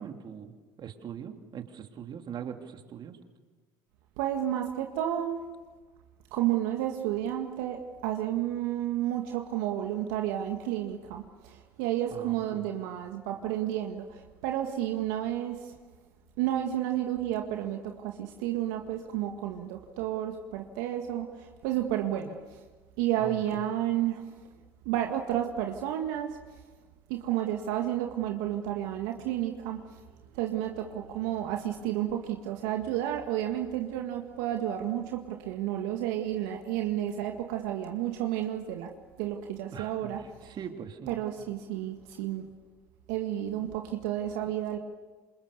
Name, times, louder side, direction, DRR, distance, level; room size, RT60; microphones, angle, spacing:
voice 1, 0.0-3.2 12.1-12.6 23.1-23.6 39.7-41.2, right 8 dB, 45° right, 5 dB, 2.9 m, -42 dB
voice 2, 4.2-5.4 6.3-15.7 16.4-22.6 23.0-24.2 24.9-26.4 27.1-29.8 30.3-38.9 39.2-40.2 41.1-42.5 43.1-44.8, right 12 dB, 70° right, 3 dB, 2.0 m, -31 dB
28.0 x 27.5 x 7.0 m, 1.3 s
hypercardioid pair, 65°, 10 cm